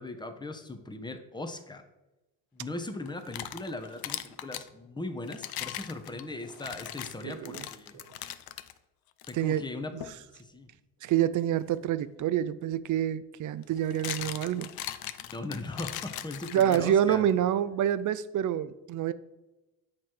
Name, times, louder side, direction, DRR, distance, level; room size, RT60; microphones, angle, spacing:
voice 1, 0.0-1.9 2.5-8.0 9.3-10.0 10.3-10.7 15.2-17.2, left 2 dB, 10° left, 0.8 m, -39 dB
sound 1, 3.1-4.7 5.3-8.7 9.2-9.3 10.0-10.2 12.3-12.4 13.6-17.1, left 12 dB, 50° left, 0.5 m, -39 dB
voice 2, 7.2-7.7 7.9-8.0 9.3-9.6 9.9-10.0 11.0-14.7 16.5-19.1, right 10 dB, 40° right, 0.4 m, -27 dB
8.5 x 3.1 x 4.4 m
hypercardioid pair, 60°, 49 cm